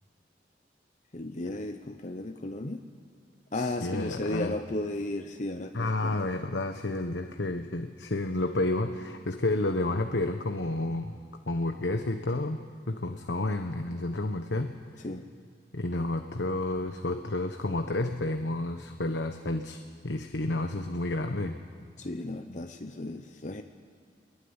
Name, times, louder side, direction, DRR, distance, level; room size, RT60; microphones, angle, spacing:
voice 1, 1.1-2.8 3.5-6.2 15.0-15.3 22.0-23.6, left 2 dB, 45° left, 6 dB, 0.9 m, -34 dB
voice 2, 3.5-4.5 5.7-11.1 11.5-14.7 15.7-21.5, left 2 dB, 85° left, 6 dB, 1.1 m, -30 dB
22.0 x 22.0 x 9.8 m, 2.2 s
head